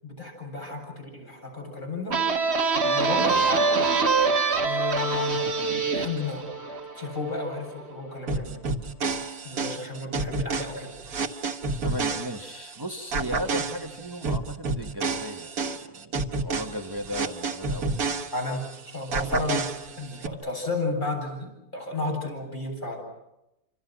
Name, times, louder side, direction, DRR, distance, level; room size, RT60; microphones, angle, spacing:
voice 1, 0.0-2.2 2.8-3.9 4.6-5.5 5.9-6.5 7.0-8.6 9.4-10.9 18.3-23.0, left 3 dB, 30° left, 0 dB, 8.3 m, -32 dB
sound 1, 2.1-7.5, right 4 dB, 45° right, 1.7 m, -24 dB
sound 2, 8.3-12.7 13.1-18.7 19.1-20.3, right 4 dB, 75° right, 2.0 m, -30 dB
voice 2, 11.8-15.5 15.8-18.1, equal, 15° right, 4 dB, 1.5 m, -36 dB
29.0 x 26.5 x 6.2 m, 0.91 s
omnidirectional pair, 1.6 m